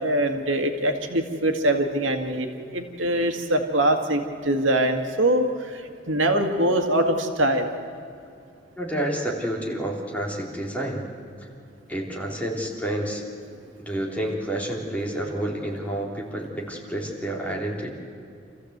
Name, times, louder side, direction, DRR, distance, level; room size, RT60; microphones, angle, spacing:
voice 1, 0.0-7.7, right 1 dB, 85° right, 5 dB, 2.0 m, -23 dB
voice 2, 8.8-11.1 11.9-13.2 13.8-17.9, right 1 dB, 10° left, -3 dB, 3.3 m, -29 dB
27.5 x 15.0 x 8.1 m, 2.5 s
head